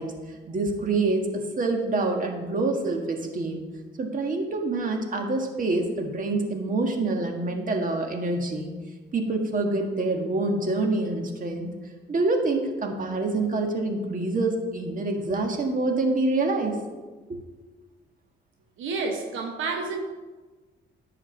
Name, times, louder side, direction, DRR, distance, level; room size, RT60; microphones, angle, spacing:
voice 1, 0.0-3.6 4.0-8.7 9.1-11.7 12.1-16.8, right 2 dB, 40° right, 3 dB, 1.7 m, -26 dB
voice 2, 18.8-20.0, right 4 dB, 80° right, 2 dB, 1.5 m, -29 dB
11.0 x 5.0 x 7.6 m, 1.3 s
cardioid pair, 90°, 20 cm